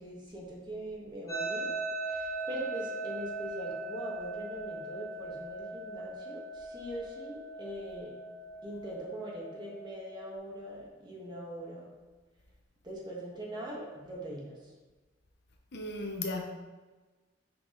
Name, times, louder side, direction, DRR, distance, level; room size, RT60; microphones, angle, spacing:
voice 1, 0.0-1.7 2.0-8.1 8.6-11.9 12.8-14.5, right 1 dB, 20° right, 1.5 m, -42 dB
sound 1, 1.3-10.3, right 2 dB, 15° left, 1.9 m, -39 dB
voice 2, 15.7-16.4, left 2 dB, 55° left, 0.8 m, -35 dB
6.5 x 6.0 x 3.8 m
head